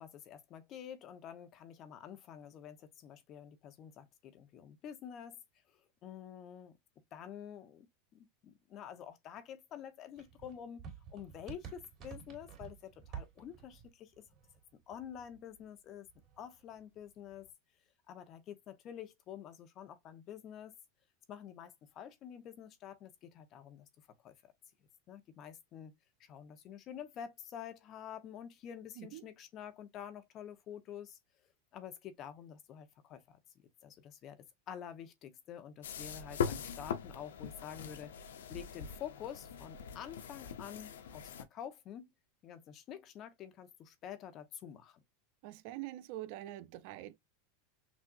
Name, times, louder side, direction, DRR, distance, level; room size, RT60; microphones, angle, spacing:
voice 1, 0.0-5.4 5.7-6.8 7.1-7.9 8.1-10.8 11.1-14.2 14.9-16.1 16.4-17.5 18.1-20.8 21.3-23.9 24.2-24.5 25.1-25.9 26.2-31.2 31.7-33.4 33.8-42.1 42.4-45.0, left 9 dB, 40° left, 1.0 m, -48 dB
sound 1, 10.2-15.7 16.0-17.5, right 7 dB, 35° right, 2.5 m, -51 dB
sound 2, 35.8-41.4, left 7 dB, 85° left, 0.7 m, -41 dB
voice 2, 45.4-47.2, right 15 dB, 60° right, 0.5 m, -44 dB
6.2 x 2.6 x 2.5 m
hypercardioid pair, 115°, 0 cm